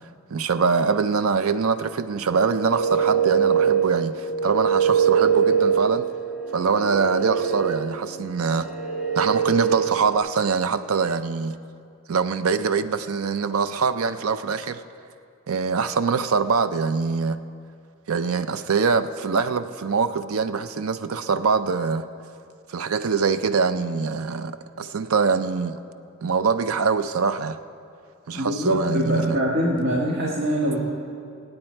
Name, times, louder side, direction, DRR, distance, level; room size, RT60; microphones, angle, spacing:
voice 1, 0.3-6.1 6.5-8.7 9.2-11.6 12.1-14.8 15.5-17.4 18.1-22.0 22.7-25.8 26.2-27.6 28.3-29.4, right 5 dB, 85° right, 12 dB, 0.5 m, -23 dB
sound 1, 2.3-10.2, right 7 dB, ahead, 1.5 m, -23 dB
voice 2, 28.3-30.8, equal, 55° right, -4 dB, 1.7 m, -23 dB
25.0 x 8.9 x 4.4 m, 2.3 s
head